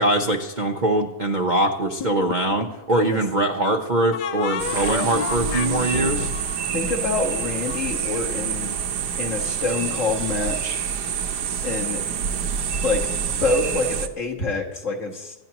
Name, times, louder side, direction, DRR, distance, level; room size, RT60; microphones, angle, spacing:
voice 1, 0.0-6.3, right 1 dB, 40° right, 3 dB, 0.7 m, -22 dB
sound 1, 2.0-2.8 4.1-7.8, left 8 dB, 75° left, 1.3 m, -31 dB
sound 2, 4.6-14.1, right 7 dB, 70° right, 1.4 m, -27 dB
voice 2, 6.7-8.7 9.2-10.8 11.6-12.0 12.8-15.3, left 3 dB, 45° left, 0 dB, 2.0 m, -26 dB
26.0 x 10.5 x 3.0 m, 1.1 s
omnidirectional pair, 1.9 m